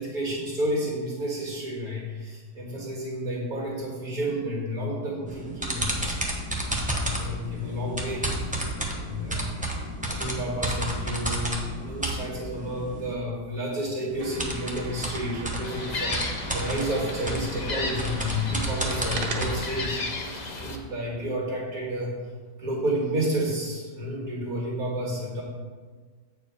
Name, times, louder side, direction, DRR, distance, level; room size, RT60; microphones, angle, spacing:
voice 1, 0.0-6.3 6.9-8.7 9.0-9.6 10.1-22.1 22.6-25.4, equal, 55° right, -4 dB, 2.3 m, -31 dB
sound 1, 5.3-13.1 14.1-19.9, right 1 dB, 10° right, 0.5 m, -32 dB
sound 2, 14.2-19.7, right 4 dB, 80° right, 1.4 m, -40 dB
Gull seagull, 15.6-20.8, left 3 dB, 75° left, 0.4 m, -34 dB
8.1 x 4.7 x 4.7 m, 1.5 s
omnidirectional pair, 1.8 m